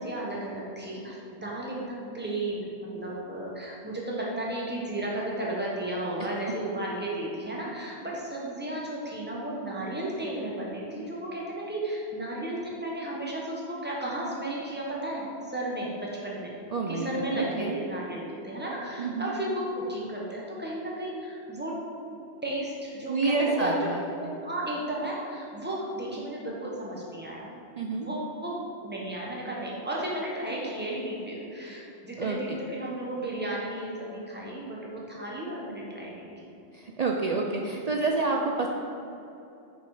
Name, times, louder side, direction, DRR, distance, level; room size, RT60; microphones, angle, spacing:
voice 1, 0.0-16.5 16.9-21.8 22.4-23.7 24.0-27.5 28.0-36.5, right 1 dB, 10° right, -4 dB, 1.1 m, -34 dB
voice 2, 16.7-17.8 19.0-19.3 23.1-24.0 27.8-28.1 32.2-32.6 36.7-38.7, right 3 dB, 60° right, 0 dB, 0.4 m, -28 dB
6.1 x 5.5 x 4.9 m, 2.7 s
omnidirectional pair, 1.2 m